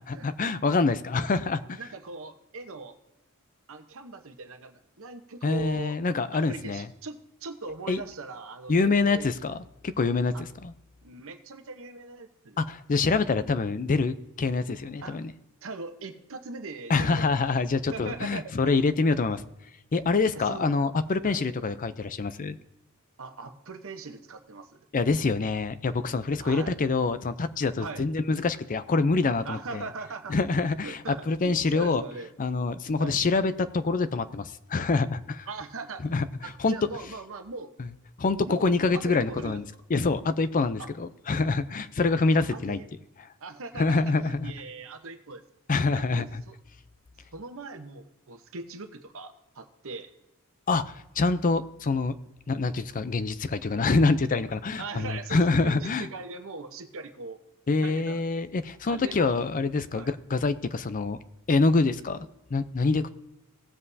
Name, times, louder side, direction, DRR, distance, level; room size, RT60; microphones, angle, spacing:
voice 1, 0.0-1.8 5.4-6.9 7.9-8.0 8.7-9.6 9.8-10.7 12.6-15.3 16.9-19.4 19.9-22.6 24.9-29.8 30.3-32.0 32.4-35.5 36.1-36.7 37.8-37.9 38.2-42.8 43.8-44.5 45.7-46.4 50.7-52.1 52.5-56.1 57.7-61.2 61.5-62.2 62.5-63.1, left 3 dB, 40° left, 13 dB, 0.5 m, -26 dB
voice 2, 1.8-3.0 3.7-6.0 6.3-9.3 10.3-10.4 11.0-12.6 15.0-15.2 15.6-17.5 17.9-18.8 20.4-20.9 21.2-21.4 23.2-24.9 26.4-26.7 27.8-28.0 29.4-30.4 30.8-32.3 33.0-33.2 35.5-36.1 36.4-37.7 38.4-39.6 40.8-40.9 42.5-42.9 43.4-45.4 45.9-46.6 47.3-50.1 54.0-54.2 54.8-57.4 57.8-58.4 58.9-59.5 60.0-60.1, right 3 dB, 65° right, 8 dB, 1.0 m, -40 dB
17.5 x 7.6 x 2.7 m, 0.93 s
head